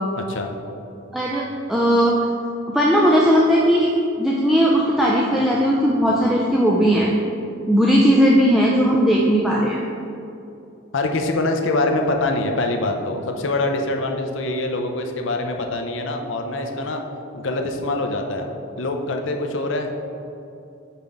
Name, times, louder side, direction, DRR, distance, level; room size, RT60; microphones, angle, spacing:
voice 1, 1.1-1.4 1.7-2.1 2.7-3.9 4.2-7.1 7.7-9.8, equal, ahead, -5 dB, 0.3 m, -17 dB
voice 2, 10.9-17.0 17.3-18.5 18.8-20.0, left 2 dB, 70° left, 4 dB, 0.6 m, -24 dB
5.7 x 5.1 x 3.5 m, 2.7 s
head